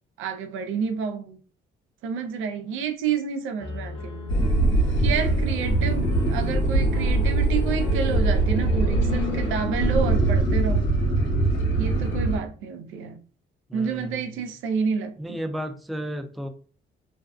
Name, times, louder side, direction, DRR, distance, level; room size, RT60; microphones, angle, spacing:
voice 1, 0.2-1.4 2.0-4.4 5.0-10.8 11.8-13.2 13.7-15.4, right 6 dB, 90° right, 0.5 m, -29 dB
Piano, 3.6-10.4, left 2 dB, 25° left, 0.8 m, -42 dB
sound 1, 4.3-12.4, right 2 dB, 75° left, 1.0 m, -22 dB
voice 2, 6.5-7.1 13.7-14.4 15.2-16.5, equal, ahead, 0.3 m, -34 dB
2.5 x 2.2 x 2.3 m
cardioid pair, 90°, 20 cm